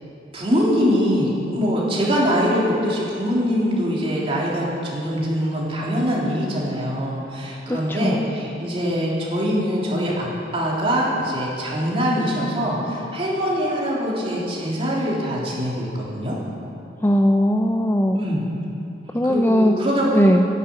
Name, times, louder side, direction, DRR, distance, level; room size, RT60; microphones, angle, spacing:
voice 1, 0.3-10.3 10.5-16.4 18.1-18.4 19.2-20.3, equal, 35° right, -5 dB, 3.3 m, -23 dB
voice 2, 7.7-8.2 17.0-18.2 19.1-19.8 20.1-20.5, equal, 10° left, 4 dB, 0.4 m, -18 dB
11.0 x 10.5 x 9.1 m, 2.9 s
head